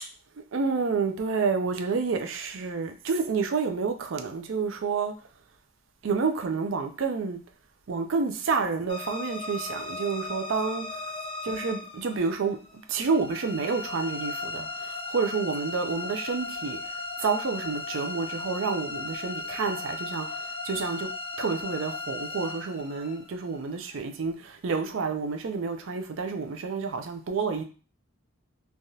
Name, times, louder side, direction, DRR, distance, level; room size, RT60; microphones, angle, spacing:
voice 1, 0.4-5.1 6.0-7.4 7.9-10.9 11.4-16.8 17.2-21.1 21.4-27.6, right 4 dB, 65° right, 0.4 m, -29 dB
sound 1, 8.9-24.0, left 3 dB, 25° left, 0.4 m, -36 dB
3.2 x 2.4 x 2.7 m
head